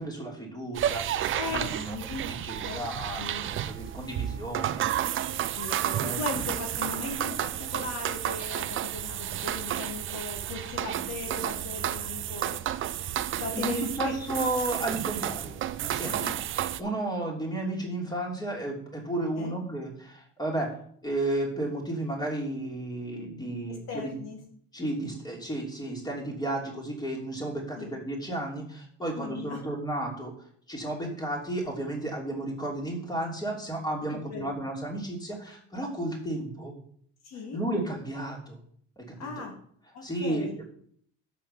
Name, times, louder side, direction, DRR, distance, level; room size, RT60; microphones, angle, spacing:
voice 1, 0.0-2.0 2.4-5.1 6.0-6.2 13.5-16.3 16.8-20.7 21.0-24.1 24.7-30.3 30.7-36.7 37.5-38.6 39.0-39.3 40.0-40.7, right 1 dB, 15° left, -1 dB, 3.0 m, -33 dB
sound 1, 0.7-16.8, right 11 dB, 40° right, 0.5 m, -31 dB
voice 2, 1.3-2.3 2.6-2.8 3.2-3.5 5.2-12.6 13.4-14.1 16.0-16.3 19.4-19.6 23.7-24.4 27.7-27.9 29.1-29.6 34.1-34.6 37.2-37.6 39.2-39.6 39.9-40.6, left 4 dB, 60° left, 3 dB, 1.6 m, -38 dB
7.0 x 5.6 x 6.9 m, 0.62 s
cardioid pair, 115°, 30 cm